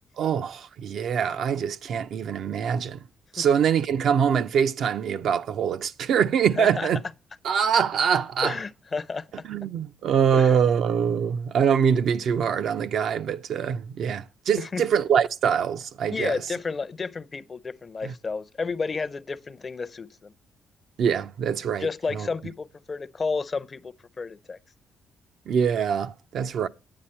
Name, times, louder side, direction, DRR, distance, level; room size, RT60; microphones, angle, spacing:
voice 1, 0.2-3.0 3.3-7.0 7.4-8.6 9.5-16.4 18.0-18.1 21.0-22.3 25.5-26.7, right 7 dB, 70° right, 0.5 m, -24 dB
voice 2, 6.6-6.9 8.4-9.5 10.3-10.5 14.6-14.8 16.1-20.3 21.8-24.6, left 4 dB, 35° left, 0.5 m, -31 dB
9.8 x 8.8 x 4.3 m
cardioid pair, 90°, 0 cm